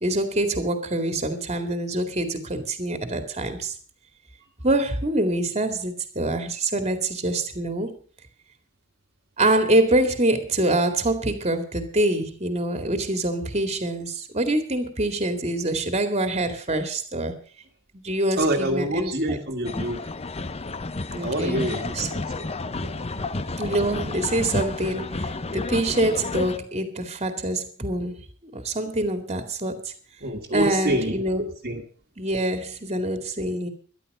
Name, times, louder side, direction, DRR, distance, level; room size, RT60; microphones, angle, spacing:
voice 1, 0.0-3.7 4.6-8.0 9.4-17.4 17.9-19.4 21.1-22.1 23.6-28.2 28.5-29.9 30.5-31.5 32.2-33.7, right 1 dB, 30° right, 2.2 m, -25 dB
voice 2, 18.4-20.0 21.2-22.5 30.2-31.1 31.6-31.8, right 1 dB, 45° right, 1.8 m, -26 dB
sound 1, 19.6-26.6, left 3 dB, 25° left, 0.7 m, -31 dB
13.0 x 11.5 x 6.7 m
head